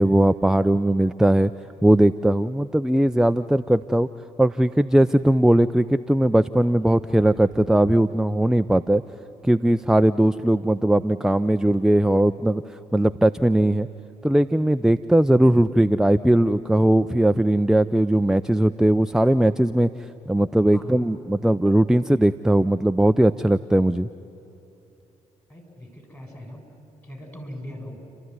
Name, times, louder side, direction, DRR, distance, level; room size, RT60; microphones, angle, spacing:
voice 1, 0.0-1.5 1.8-4.1 4.4-9.0 9.4-13.9 14.2-19.9 20.3-24.1, right 1 dB, 5° right, 11 dB, 0.5 m, -19 dB
voice 2, 20.7-21.1 25.5-26.6 27.0-28.0, left 1 dB, 15° left, 2 dB, 7.1 m, -40 dB
30.0 x 13.0 x 9.7 m, 2.8 s
hypercardioid pair, 45°, 16 cm